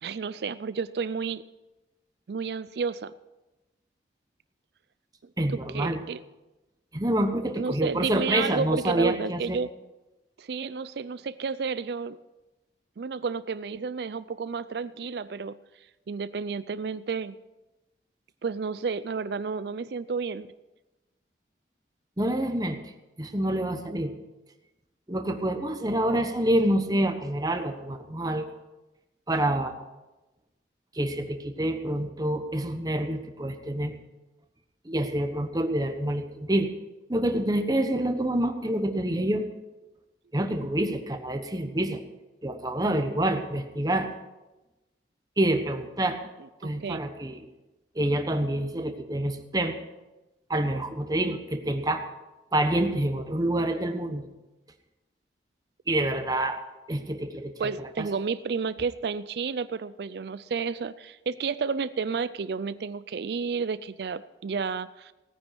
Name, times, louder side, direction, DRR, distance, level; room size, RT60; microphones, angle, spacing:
voice 1, 0.0-1.4 2.3-3.1 5.7-6.2 7.6-9.7 10.4-12.2 13.0-15.6 16.1-17.4 18.4-20.5 46.6-47.0 57.6-65.1, right 5 dB, 65° right, 15 dB, 0.4 m, -31 dB
voice 2, 5.4-6.0 6.9-9.6 22.2-22.9 23.2-24.1 25.1-28.5 29.3-29.7 30.9-33.9 34.8-36.7 37.1-39.5 40.3-42.0 42.4-44.1 45.4-46.2 46.6-47.4 47.9-49.8 50.5-52.0 52.5-54.3 55.9-56.6 56.9-58.1, right 1 dB, 20° right, 6 dB, 1.2 m, -27 dB
17.5 x 9.7 x 6.0 m, 1.0 s
head